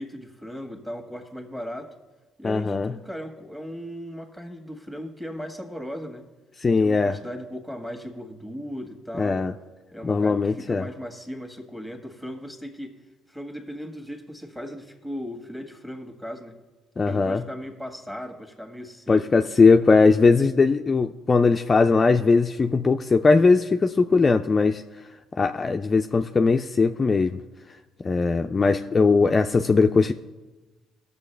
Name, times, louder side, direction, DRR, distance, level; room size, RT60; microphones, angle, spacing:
voice 1, 0.0-1.9 2.4-6.3 6.8-9.4 9.9-13.0 13.3-16.6 17.1-19.5, equal, 5° right, 4 dB, 1.7 m, -37 dB
voice 2, 2.4-2.9 6.6-7.2 9.2-9.5 10.0-10.9 17.0-17.4 19.1-24.8 25.4-27.4 28.0-30.1, left 4 dB, 35° left, 6 dB, 0.4 m, -20 dB
17.5 x 6.8 x 3.3 m, 1.2 s
hypercardioid pair, 60°, 0 cm